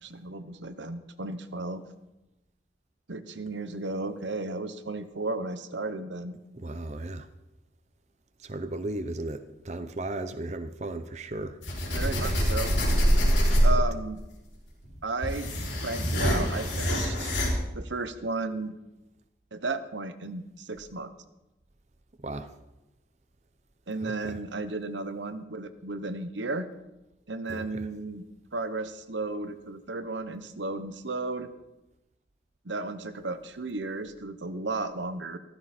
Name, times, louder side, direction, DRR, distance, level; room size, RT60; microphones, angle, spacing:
voice 1, 0.0-1.8 3.1-6.4 11.9-12.7 13.6-14.2 15.0-15.5 15.8-17.4 17.7-18.8 19.5-21.1 23.9-26.7 27.3-28.2 28.5-31.5 32.6-35.4, right 3 dB, 85° right, 10 dB, 1.1 m, -34 dB
voice 2, 6.5-7.3 8.4-11.6 12.2-12.4 13.7-13.8 22.2-22.5 24.0-24.4 27.5-27.9, right 2 dB, 40° right, 9 dB, 0.7 m, -36 dB
sound 1, 11.6-14.0 14.8-17.5, equal, 85° left, 5.9 m, -25 dB
15.5 x 14.5 x 4.4 m, 0.96 s
head